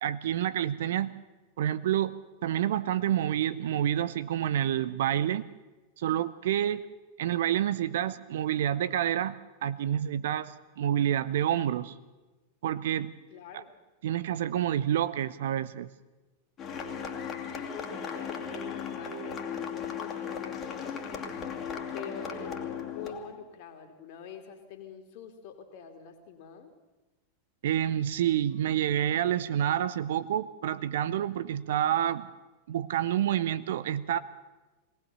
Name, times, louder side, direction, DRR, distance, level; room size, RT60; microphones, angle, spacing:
voice 1, 0.0-1.1 1.6-2.1 2.4-5.5 6.0-6.8 7.2-12.0 12.6-13.1 13.5-13.6 14.0-15.9 27.6-32.3 32.7-34.2, right 11 dB, 60° right, 15 dB, 0.7 m, -28 dB
voice 2, 13.3-13.8 17.7-21.6 21.9-26.7, left 7 dB, 45° left, 6 dB, 2.7 m, -46 dB
sound 1, 16.6-23.4, left 6 dB, 30° left, 2.5 m, -36 dB
21.0 x 18.5 x 6.8 m, 1.1 s
figure-of-eight pair, 90°, 0 cm